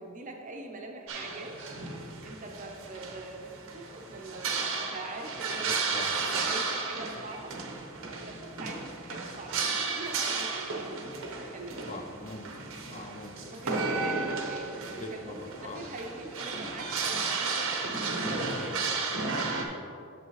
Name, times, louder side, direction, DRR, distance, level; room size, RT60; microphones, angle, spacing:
voice 1, 0.0-1.6 2.2-7.6 8.1-11.9 13.4-18.0, right 2 dB, 35° right, 2 dB, 0.8 m, -43 dB
sound 1, 1.1-19.7, right 4 dB, 65° right, 0.9 m, -33 dB
voice 2, 5.9-6.5 11.9-13.5 14.9-15.8 18.2-19.7, left 2 dB, 35° left, 4 dB, 0.5 m, -43 dB
8.1 x 6.8 x 3.1 m, 2.6 s
head